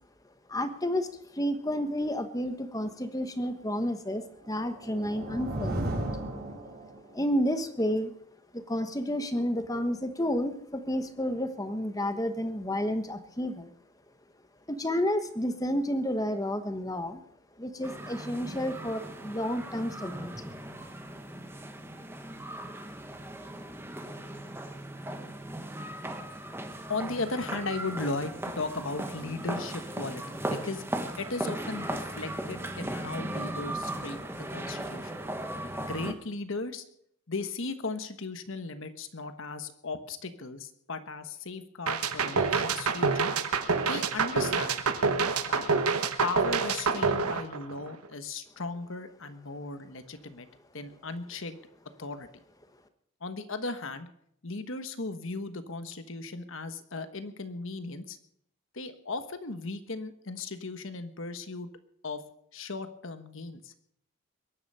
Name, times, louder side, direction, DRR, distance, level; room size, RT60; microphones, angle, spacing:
voice 1, 0.5-6.1 7.1-8.1 8.5-13.7 14.7-17.2 17.6-20.5, equal, 15° left, 9 dB, 1.1 m, -31 dB
sound 1, 4.4-7.2, right 1 dB, 45° right, 4.3 m, -35 dB
sound 2, 17.8-36.1, right 1 dB, 10° right, 1.1 m, -37 dB
voice 2, 26.9-30.8 31.2-35.1 35.8-36.8 37.3-43.3 43.9-44.8 45.5-45.6 46.2-50.5 50.7-51.6 52.0-52.3 53.2-54.1 54.4-58.2 58.7-61.7 62.0-62.2 62.5-63.7, left 3 dB, 60° left, 10 dB, 1.2 m, -36 dB
sound 3, 41.9-48.1, right 4 dB, 80° right, 1.2 m, -27 dB
22.5 x 11.0 x 5.5 m, 0.71 s
head